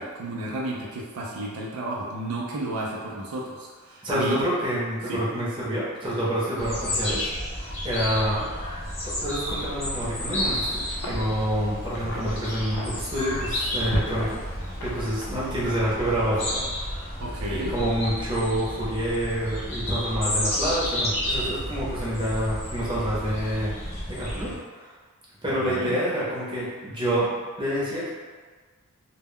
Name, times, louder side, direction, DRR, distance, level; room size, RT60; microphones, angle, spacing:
voice 1, 0.0-4.4 5.1-5.2 17.2-17.8 25.6-25.9, right 1 dB, 80° right, -3 dB, 0.4 m, -32 dB
voice 2, 4.0-7.3 7.8-8.5 9.0-14.4 14.8-16.6 17.5-23.7 24.1-24.9 25.4-28.1, equal, 20° right, -8 dB, 0.7 m, -27 dB
sound 1, 6.6-24.6, left 1 dB, 30° left, 0.9 m, -31 dB
Wind, 9.4-15.9, equal, 90° left, 0.6 m, -37 dB
2.1 x 2.1 x 3.6 m, 1.5 s
head